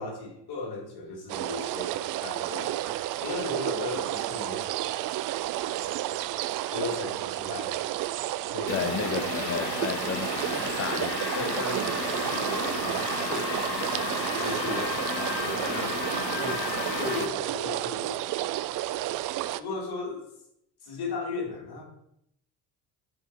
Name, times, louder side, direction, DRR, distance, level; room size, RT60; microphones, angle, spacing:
voice 1, 0.0-2.9 3.2-5.2 5.5-6.1 6.7-7.8 8.5-9.3 11.3-13.5 14.4-16.0 16.3-16.7 16.9-18.2 19.6-20.3 20.8-21.8, left 3 dB, 50° left, 2.7 m, -36 dB
sound 1, 1.3-19.6, right 14 dB, 45° right, 0.4 m, -31 dB
sound 2, 8.7-17.3, left 5 dB, 90° left, 0.8 m, -33 dB
voice 2, 8.7-11.6, left 8 dB, 30° left, 0.5 m, -33 dB
7.4 x 4.7 x 4.4 m
hypercardioid pair, 60°, 50 cm